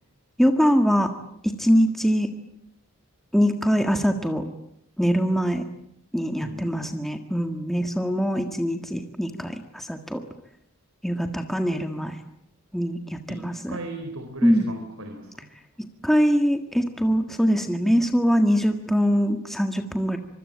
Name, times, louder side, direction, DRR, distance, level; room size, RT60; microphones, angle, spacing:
voice 1, 0.4-1.1 1.6-2.3 3.3-4.5 5.0-5.7 6.1-10.2 11.0-12.2 12.7-13.8 14.4-14.7 16.0-20.2, equal, ahead, 5 dB, 1.7 m, -23 dB
voice 2, 6.4-7.0 13.3-15.5, right 2 dB, 80° right, 6 dB, 4.1 m, -37 dB
26.0 x 24.0 x 8.9 m, 0.75 s
head